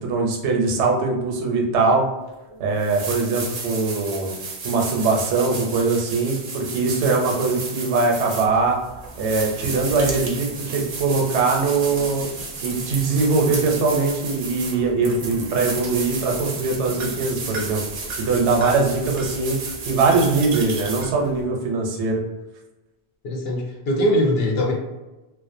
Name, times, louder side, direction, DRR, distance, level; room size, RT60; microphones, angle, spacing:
voice 1, 0.0-2.0 2.6-4.3 4.6-8.8 9.2-12.3 12.6-17.8 18.2-19.6 19.8-22.2, right 3 dB, 85° right, 0 dB, 0.9 m, -21 dB
sound 1, 2.3-2.4 2.8-21.4, right 3 dB, 60° right, 0.6 m, -32 dB
voice 2, 23.2-24.7, equal, 70° left, 0 dB, 0.7 m, -22 dB
2.4 x 2.1 x 2.5 m, 1.0 s
omnidirectional pair, 1.1 m